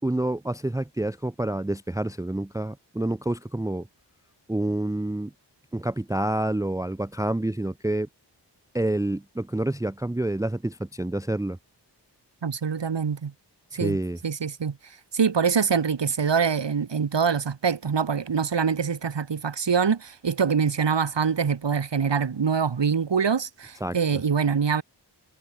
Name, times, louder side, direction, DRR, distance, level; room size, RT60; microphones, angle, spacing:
voice 1, 0.0-3.9 4.5-5.3 5.7-8.1 8.7-11.6 13.8-14.2 23.8-24.0, right 1 dB, 10° right, 0.6 m, -28 dB
voice 2, 12.4-13.3 13.7-14.0 14.2-14.8 15.1-24.8, right 6 dB, 75° right, 2.0 m, -24 dB
wide cardioid pair, 65°, 43 cm